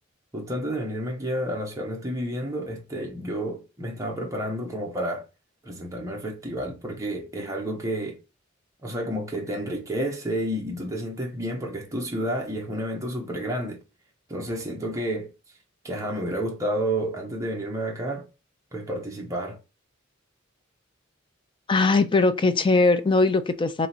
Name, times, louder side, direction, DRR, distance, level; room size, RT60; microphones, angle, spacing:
voice 1, 0.3-5.2 5.6-8.2 8.8-13.8 14.3-15.3 15.8-18.2 18.7-19.6, right 1 dB, 15° right, 1.1 m, -30 dB
voice 2, 21.7-23.9, left 3 dB, 25° left, 0.4 m, -20 dB
3.7 x 3.0 x 4.4 m
head